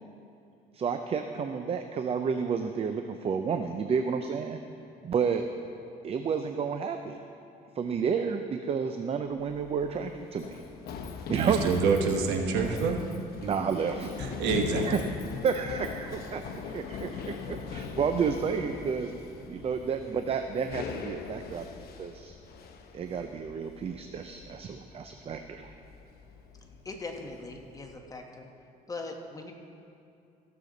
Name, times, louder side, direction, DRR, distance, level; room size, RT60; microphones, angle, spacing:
voice 1, 0.7-4.6 5.0-5.4 6.0-7.2 7.8-10.6 11.3-11.6 13.4-14.1 14.8-15.0 15.4-19.1 19.5-22.3 22.9-25.7, right 6 dB, 35° right, 7 dB, 0.5 m, -31 dB
Run, 9.4-28.0, left 5 dB, 65° left, 0.9 m, -40 dB
voice 2, 11.3-13.0 14.2-14.9, right 5 dB, 85° right, 3 dB, 1.1 m, -27 dB
voice 3, 26.8-28.5 28.9-29.5, left 3 dB, 20° left, 2 dB, 1.2 m, -40 dB
16.0 x 6.9 x 3.9 m, 2.5 s
cardioid pair, 110°, 17 cm